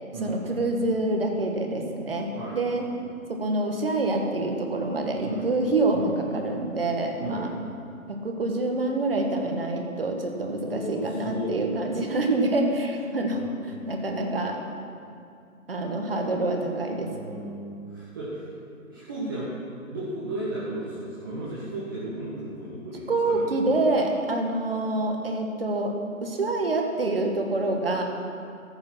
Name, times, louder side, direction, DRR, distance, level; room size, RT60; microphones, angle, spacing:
voice 1, 0.2-2.3 2.5-2.8 3.4-7.5 8.1-14.6 15.7-17.1 23.1-25.9 26.2-28.0, right 2 dB, 45° right, 2 dB, 1.5 m, -26 dB
voice 2, 10.6-11.5 13.3-13.6 17.0-18.5 18.9-19.5 19.9-23.4, right 1 dB, 15° right, -9 dB, 1.2 m, -34 dB
14.5 x 7.0 x 6.0 m, 2.4 s
figure-of-eight pair, 150°, 42 cm